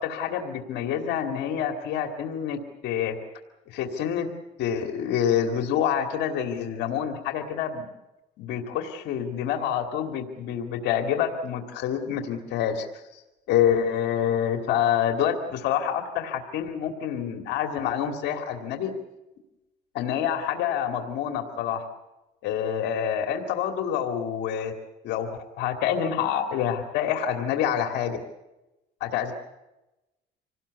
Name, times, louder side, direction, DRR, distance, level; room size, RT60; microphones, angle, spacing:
voice 1, 0.0-3.2 3.7-4.3 4.6-7.9 8.4-13.2 13.5-18.9 19.9-21.8 22.4-24.7 25.0-28.2 29.0-29.3, left 9 dB, 85° left, 5 dB, 2.4 m, -27 dB
26.5 x 18.5 x 8.3 m, 1.0 s
cardioid pair, 110°, 17 cm